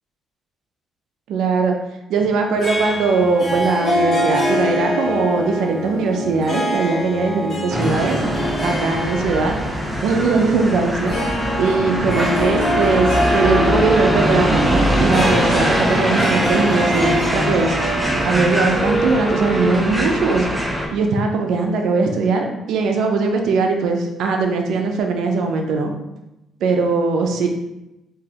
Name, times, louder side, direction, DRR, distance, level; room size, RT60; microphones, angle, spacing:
voice 1, 1.3-1.7 2.1-8.2 8.6-9.5 10.0-11.1 11.6-17.8 18.2-20.5 20.9-25.9 26.6-27.5, right 4 dB, 80° right, 3 dB, 0.5 m, -20 dB
Harp, 2.6-19.4, equal, 50° left, 1.2 m, -24 dB
sound 1, 7.7-20.9, equal, 10° right, 0.8 m, -22 dB
Wind instrument woodwind instrument, 12.6-16.5 16.7-20.8, right 2 dB, 45° right, 1.1 m, -27 dB
3.8 x 2.8 x 2.9 m, 0.92 s
cardioid pair, 90°, 0 cm